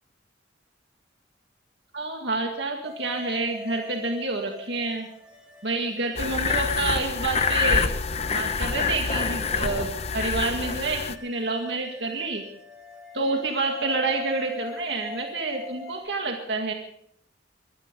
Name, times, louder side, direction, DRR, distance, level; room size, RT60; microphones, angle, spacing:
voice 1, 1.9-5.1 5.6-7.9 8.3-12.4 13.1-16.7, right 3 dB, 65° right, 2 dB, 2.0 m, -28 dB
sound 1, 2.8-16.1, left 1 dB, 5° right, 4.8 m, -44 dB
sound 2, 6.2-11.2, left 5 dB, 35° left, 0.7 m, -26 dB
24.0 x 13.0 x 3.9 m, 0.70 s
head